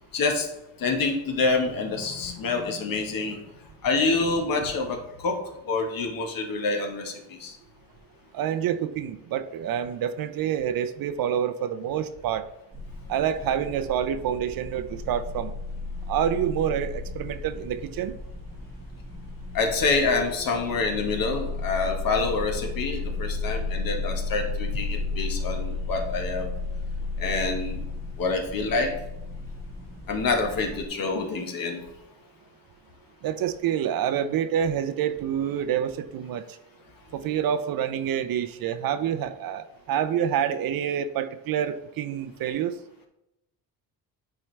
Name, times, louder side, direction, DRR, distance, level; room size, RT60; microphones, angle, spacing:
voice 1, 0.1-0.5 0.8-3.4 3.8-5.4 5.7-7.5 19.5-26.5 27.2-27.8 28.2-28.9 30.1-31.8, left 3 dB, 60° left, 3 dB, 1.3 m, -27 dB
voice 2, 8.3-12.5 13.1-15.5 16.1-18.2 33.2-36.4 37.1-42.7, right 9 dB, 60° right, 11 dB, 0.6 m, -27 dB
sound 1, 12.7-30.9, left 3 dB, 5° right, 1.0 m, -34 dB
8.7 x 4.6 x 3.2 m, 0.87 s
cardioid pair, 100°, 39 cm